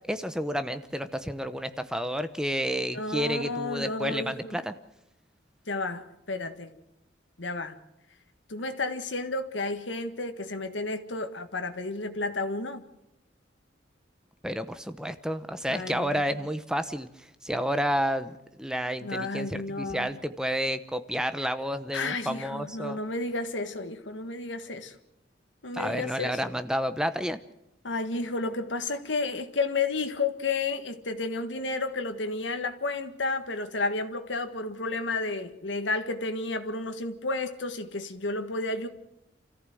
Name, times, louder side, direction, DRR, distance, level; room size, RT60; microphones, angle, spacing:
voice 1, 0.1-4.7 14.4-17.1 17.4-23.0 25.7-27.4, equal, 5° right, 0.9 m, -30 dB
voice 2, 2.9-4.6 5.7-6.7 7.4-7.8 8.5-12.8 15.7-16.2 19.0-20.1 21.9-24.9 25.6-26.5 27.8-38.9, left 3 dB, 80° left, 1.7 m, -32 dB
28.5 x 14.5 x 7.8 m
head